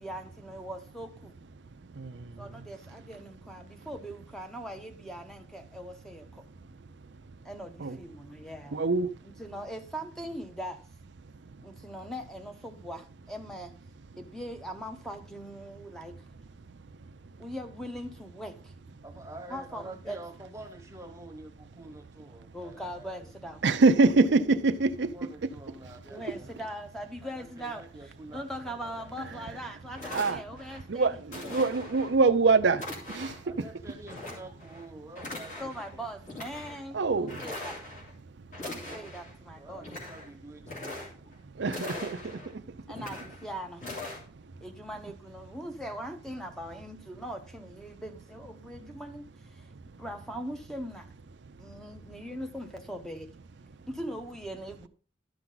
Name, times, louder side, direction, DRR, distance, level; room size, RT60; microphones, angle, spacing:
voice 1, 0.0-1.4 2.4-6.4 7.4-8.8 9.4-10.8 11.6-13.7 14.2-16.1 17.4-18.7 19.5-20.2 22.5-23.8 26.1-31.2 34.3-34.4 35.3-37.7 38.6-39.9 41.9-42.1 42.9-43.8 44.6-49.7 50.0-51.1 51.6-53.3 53.9-54.9, equal, 5° left, 0.9 m, -41 dB
voice 2, 8.7-9.1 23.6-25.1 30.1-30.4 30.9-32.8 33.1-33.3 36.9-37.4 41.6-42.2, right 3 dB, 65° right, 0.5 m, -24 dB
voice 3, 19.0-23.3 25.1-26.7 27.2-29.6 33.4-36.1 38.8-39.1 39.6-41.4, right 2 dB, 15° right, 1.1 m, -48 dB
sound 1, 29.5-29.6 29.9-30.8 31.3-32.1 32.7-33.5 34.1-34.8 35.1-35.9 36.2-36.8 37.3-38.1 38.5-39.3 39.7-40.3 40.6-41.3 41.6-42.5 42.9-43.4 43.8-44.2, left 2 dB, 40° left, 2.9 m, -41 dB
12.0 x 5.9 x 3.9 m
head